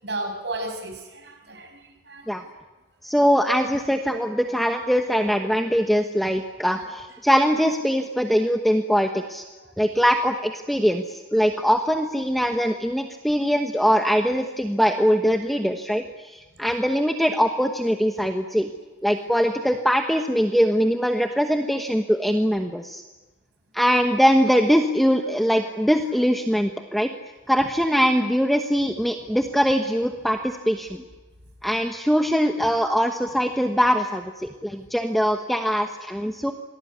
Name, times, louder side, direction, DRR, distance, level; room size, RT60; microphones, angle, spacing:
voice 1, 0.0-2.2, right 2 dB, 65° right, 3 dB, 6.6 m, -33 dB
voice 2, 3.0-9.4 9.8-18.7 19.0-23.0 23.7-27.1 27.5-31.0 31.6-36.5, equal, ahead, 4 dB, 1.1 m, -22 dB
27.0 x 20.0 x 9.6 m, 1.2 s
head